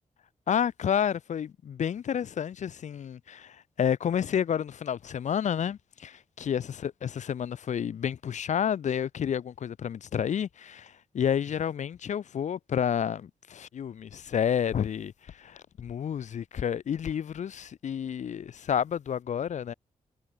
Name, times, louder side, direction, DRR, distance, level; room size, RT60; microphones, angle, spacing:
voice 1, 0.5-19.7, left 8 dB, 65° left, 0.8 m, -30 dB
wide cardioid pair, 160°, 13 cm